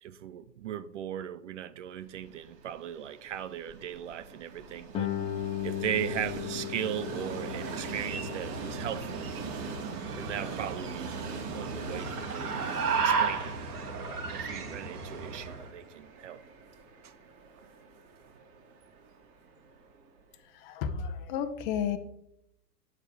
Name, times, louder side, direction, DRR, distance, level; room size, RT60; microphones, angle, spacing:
voice 1, 0.0-5.1 5.6-9.3 10.1-12.6 12.9-13.6 14.3-16.4 17.0-17.1 17.6-17.7, right 10 dB, 50° right, 0.6 m, -38 dB
Train, 2.1-20.2, right 5 dB, 30° right, 1.9 m, -43 dB
Guitar, 4.9-10.3, left 10 dB, 10° left, 0.5 m, -37 dB
sound 1, 7.0-15.7, right 5 dB, 65° right, 1.9 m, -34 dB
voice 2, 20.4-22.0, left 8 dB, 30° left, 1.0 m, -32 dB
9.6 x 6.5 x 4.8 m
figure-of-eight pair, 105°, 49 cm